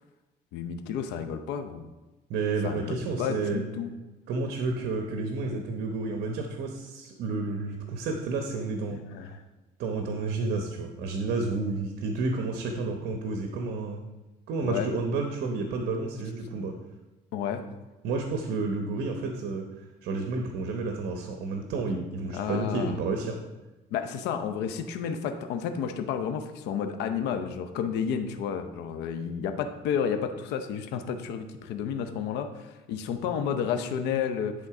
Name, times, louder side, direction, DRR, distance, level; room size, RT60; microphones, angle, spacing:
voice 1, 0.5-1.9 2.6-3.9 8.9-9.4 14.6-14.9 17.3-17.7 22.3-23.0 23.9-34.5, left 7 dB, 90° left, 8 dB, 0.7 m, -31 dB
voice 2, 2.3-3.6 4.3-9.0 9.8-14.0 14.5-16.7 18.0-23.4, right 3 dB, 75° right, 4 dB, 1.0 m, -30 dB
10.5 x 3.8 x 4.9 m, 1.1 s
cardioid pair, 110°, 17 cm